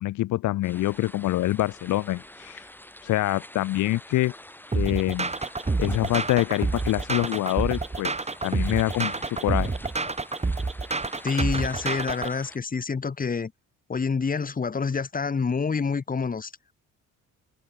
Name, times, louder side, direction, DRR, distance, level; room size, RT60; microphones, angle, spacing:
voice 1, 0.0-2.6 3.0-4.3 4.7-5.3 5.8-8.1 8.4-9.8, left 16 dB, 75° left, 0.7 m, -25 dB
sound 1, 0.6-12.6, left 1 dB, 5° left, 5.3 m, -46 dB
sound 2, 4.7-12.3, right 3 dB, 20° right, 3.9 m, -28 dB
voice 2, 11.2-13.5 13.9-16.5, left 5 dB, 30° left, 1.6 m, -27 dB
cardioid pair, 90°, 30 cm